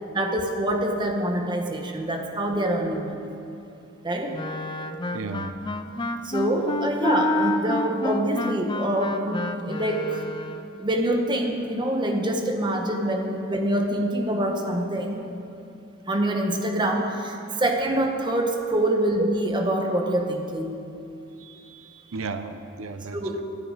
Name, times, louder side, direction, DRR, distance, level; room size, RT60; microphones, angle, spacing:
voice 1, 0.1-3.3 4.0-4.4 6.2-10.2 10.8-15.2 16.1-20.8 23.1-23.4, right 1 dB, 20° right, 2 dB, 1.2 m, -25 dB
Wind instrument woodwind instrument, 4.3-10.7, left 2 dB, 20° left, 0.5 m, -29 dB
voice 2, 5.1-5.6 21.4-23.4, right 4 dB, 75° right, 8 dB, 0.6 m, -35 dB
24.0 x 8.7 x 4.1 m, 2.8 s
head